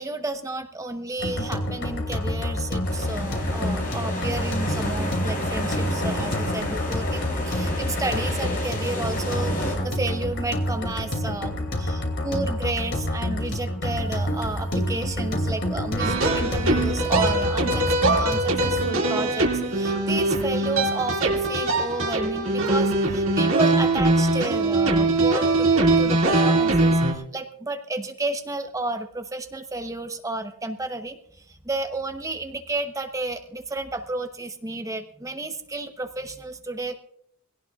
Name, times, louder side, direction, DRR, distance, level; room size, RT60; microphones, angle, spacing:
voice 1, 0.0-36.9, right 2 dB, 15° right, 7 dB, 0.9 m, -32 dB
sound 1, 1.2-18.9, left 1 dB, 55° left, 2.6 m, -28 dB
sound 2, 2.8-9.8, left 1 dB, 40° left, 6.1 m, -31 dB
sound 3, 16.0-27.1, right 2 dB, 65° right, 2.3 m, -22 dB
22.0 x 17.0 x 2.4 m, 0.65 s
head